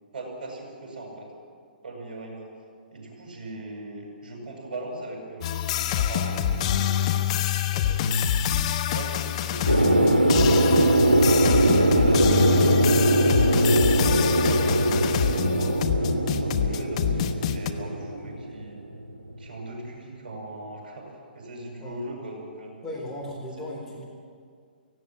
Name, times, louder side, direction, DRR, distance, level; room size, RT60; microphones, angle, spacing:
voice 1, 0.1-1.3 1.8-2.5 2.9-7.2 8.9-10.7 11.0-13.0 13.7-18.8 19.4-22.8, right 2 dB, 50° right, 0 dB, 7.4 m, -39 dB
sound 1, 5.4-17.7, left 10 dB, 40° left, 1.2 m, -26 dB
voice 2, 7.7-8.3 21.8-22.0 22.8-24.0, left 1 dB, 10° left, -4 dB, 4.0 m, -37 dB
sound 2, 9.7-19.4, right 1 dB, 90° right, 1.5 m, -21 dB
17.5 x 16.5 x 9.3 m, 2.1 s
figure-of-eight pair, 125°, 5 cm